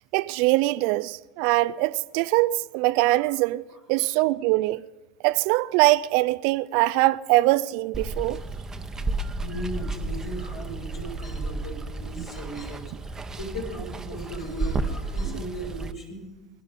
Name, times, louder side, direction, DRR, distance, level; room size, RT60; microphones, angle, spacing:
voice 1, 0.1-3.6 3.9-4.8 5.2-8.4 12.2-12.3 15.2-15.3, right 18 dB, 55° right, 0.4 m, -22 dB
voice 2, 3.7-4.2 9.1-16.2, equal, 80° left, 6.0 m, -37 dB
Water, 7.9-15.9, right 2 dB, 15° right, 1.0 m, -32 dB
22.5 x 11.5 x 3.7 m
figure-of-eight pair, 80°, 3 cm